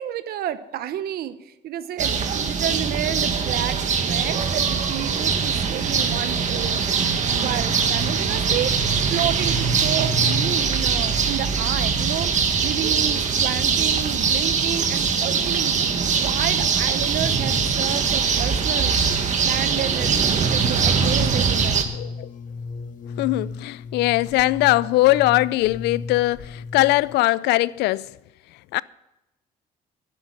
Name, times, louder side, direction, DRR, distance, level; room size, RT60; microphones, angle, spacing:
voice 1, 0.0-2.2 2.5-6.8 7.4-8.7 9.1-15.8 16.1-18.9 19.4-21.9, right 11 dB, 65° right, 0.9 m, -30 dB
sound 1, 2.0-21.8, right 5 dB, 45° right, 1.6 m, -22 dB
sound 2, 20.8-27.2, left 4 dB, 50° left, 1.4 m, -35 dB
voice 2, 21.9-22.3 23.2-28.1 28.7-28.8, left 18 dB, 85° left, 0.4 m, -20 dB
11.5 x 9.9 x 6.3 m
cardioid pair, 110°, 17 cm